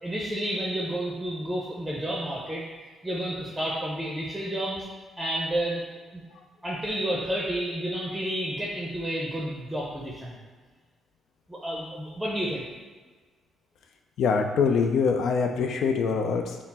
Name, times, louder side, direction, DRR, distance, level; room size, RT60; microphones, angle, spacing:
voice 1, 0.0-2.6 3.0-4.9 5.2-5.8 6.6-10.3 11.5-12.6, right 1 dB, 10° right, -4 dB, 0.6 m, -30 dB
voice 2, 14.2-16.6, left 5 dB, 70° left, 5 dB, 0.4 m, -24 dB
4.1 x 2.0 x 4.1 m, 1.4 s
cardioid pair, 90°, 0 cm